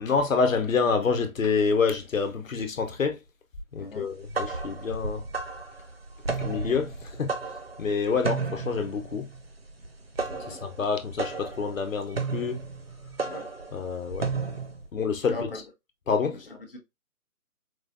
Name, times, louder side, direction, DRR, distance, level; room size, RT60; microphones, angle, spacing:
voice 1, 0.0-3.2 3.7-5.2 6.4-7.3 7.8-9.3 10.5-12.6 13.7-14.3 14.9-15.4 16.1-16.4, left 5 dB, 65° left, 1.0 m, -27 dB
voice 2, 3.8-4.1 10.2-10.6 13.2-13.5 15.3-15.6 16.3-16.8, left 3 dB, 40° left, 0.8 m, -39 dB
sound 1, 4.1-14.8, right 4 dB, 45° right, 0.5 m, -33 dB
4.7 x 2.3 x 2.5 m
figure-of-eight pair, 165°, 43 cm